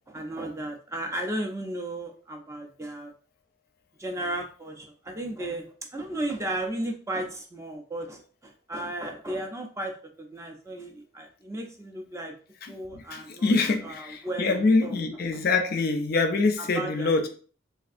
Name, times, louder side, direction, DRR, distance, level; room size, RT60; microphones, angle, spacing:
voice 1, 0.1-3.1 4.0-5.7 5.9-9.9 10.2-12.3 12.7-13.5 13.8-15.4 16.6-17.3, right 1 dB, 15° right, 2 dB, 0.3 m, -35 dB
voice 2, 13.1-17.3, left 3 dB, 50° left, 5 dB, 0.4 m, -24 dB
3.4 x 2.4 x 2.4 m, 0.41 s
head